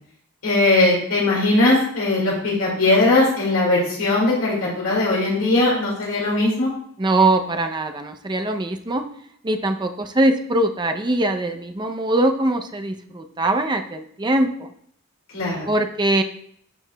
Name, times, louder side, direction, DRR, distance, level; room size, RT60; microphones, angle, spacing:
voice 1, 0.4-6.7 15.3-15.7, left 2 dB, 75° left, -4 dB, 2.2 m, -19 dB
voice 2, 7.0-9.0 9.4-14.7 15.7-16.2, right 2 dB, 20° right, 6 dB, 0.5 m, -22 dB
11.5 x 4.7 x 2.2 m, 0.64 s
head